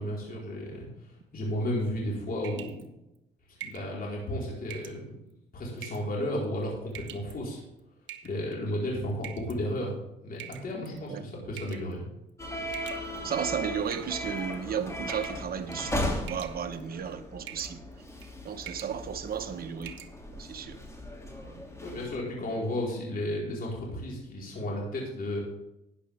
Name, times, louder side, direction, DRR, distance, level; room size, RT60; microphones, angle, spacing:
voice 1, 0.0-2.9 3.6-5.2 5.5-7.6 8.2-10.0 10.2-12.0 21.8-25.4, left 1 dB, 45° left, -3 dB, 4.4 m, -33 dB
sound 1, 2.4-2.8 3.6-3.9 4.7-5.0 5.8-6.1 6.9-7.3 8.1-8.5 9.2-9.6 10.4-11.0 11.6-11.9 12.7-13.4 13.9-14.5 15.1-15.4 15.7-16.0 16.3-16.8 17.5-17.7 18.1-18.3 18.6-19.0 19.3-19.4 19.8-20.1, right 11 dB, 70° right, 1.2 m, -44 dB
sound 2, 12.4-22.2, left 1 dB, 15° left, 2.7 m, -37 dB
voice 2, 13.2-17.8 18.4-20.0 20.3-20.8, right 7 dB, 50° right, 6 dB, 1.1 m, -34 dB
13.0 x 9.8 x 3.5 m, 0.89 s
cardioid pair, 90°, 20 cm